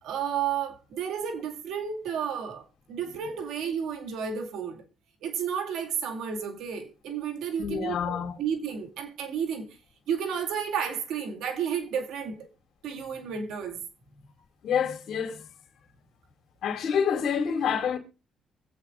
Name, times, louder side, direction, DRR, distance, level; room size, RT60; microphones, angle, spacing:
voice 1, 0.0-4.8 5.2-9.8 10.1-12.5 12.8-13.8, right 7 dB, 85° right, 2.2 m, -32 dB
voice 2, 7.6-8.4 14.6-15.5 16.6-18.0, left 7 dB, 70° left, 2.4 m, -27 dB
24.0 x 8.3 x 2.6 m
cardioid pair, 90°, 0 cm